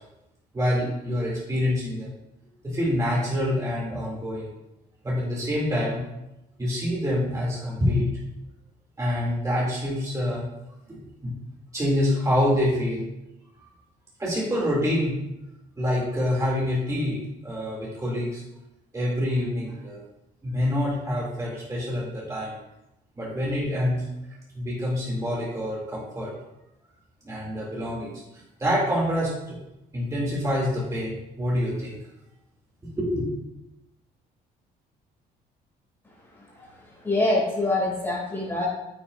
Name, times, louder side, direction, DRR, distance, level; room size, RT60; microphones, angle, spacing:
voice 1, 0.5-2.1 2.6-4.5 5.0-6.0 6.6-8.1 9.0-10.4 10.9-11.3 11.7-13.1 14.2-15.1 15.8-18.4 18.9-20.0 20.4-22.5 23.2-24.0 24.5-26.3 27.2-29.6 29.9-32.0 32.8-33.3, left 1 dB, 20° right, -5 dB, 2.5 m, -26 dB
voice 2, 37.0-38.7, left 2 dB, 15° left, -4 dB, 2.5 m, -25 dB
8.5 x 6.3 x 2.5 m, 0.89 s
cardioid pair, 110°, 17 cm